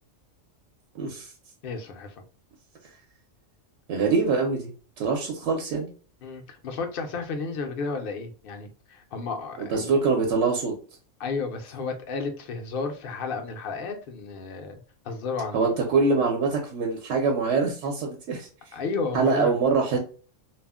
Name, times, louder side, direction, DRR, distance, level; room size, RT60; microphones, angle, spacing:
voice 1, 0.9-1.3 3.9-5.9 9.6-10.7 15.5-18.5 19.1-20.0, right 4 dB, 70° right, 1 dB, 0.9 m, -24 dB
voice 2, 1.6-2.1 6.2-9.9 11.2-14.7 15.0-15.7 18.7-19.5, left 4 dB, 60° left, 5 dB, 0.6 m, -32 dB
2.4 x 2.0 x 3.4 m, 0.39 s
omnidirectional pair, 1.3 m